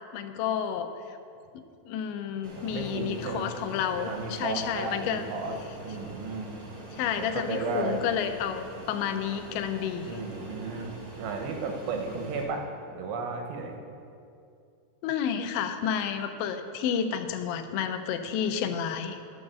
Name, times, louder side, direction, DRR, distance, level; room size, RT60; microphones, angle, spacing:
voice 1, 0.1-0.9 1.5-5.3 6.9-10.2 15.0-19.2, left 8 dB, 85° left, 8 dB, 2.9 m, -30 dB
Fixed-wing aircraft airplane, 2.4-12.4, right 2 dB, 60° right, 0.8 m, -44 dB
voice 2, 2.6-3.5 3.9-5.6 5.8-6.5 7.2-8.0 10.1-10.9 11.2-12.7 12.9-13.8, right 4 dB, 85° right, 3 dB, 3.4 m, -34 dB
12.0 x 6.3 x 6.8 m, 2.5 s
omnidirectional pair, 5.2 m